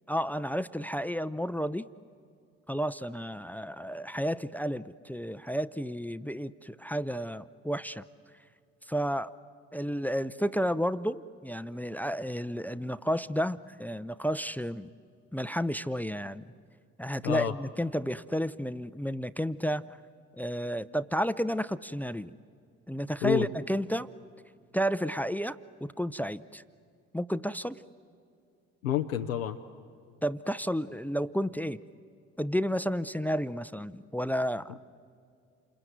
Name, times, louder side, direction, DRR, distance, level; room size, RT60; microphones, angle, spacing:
voice 1, 0.1-1.8 2.7-8.0 8.9-9.3 9.7-14.9 15.3-16.5 17.0-19.8 20.4-22.4 22.9-24.1 24.7-26.6 27.1-27.8 30.2-31.8 32.4-34.9, equal, 5° left, 15 dB, 0.6 m, -31 dB
voice 2, 17.2-17.5 23.2-23.5 28.8-29.6, left 10 dB, 85° left, 4 dB, 0.7 m, -28 dB
28.5 x 21.5 x 9.4 m, 2.4 s
figure-of-eight pair, 45°, 39 cm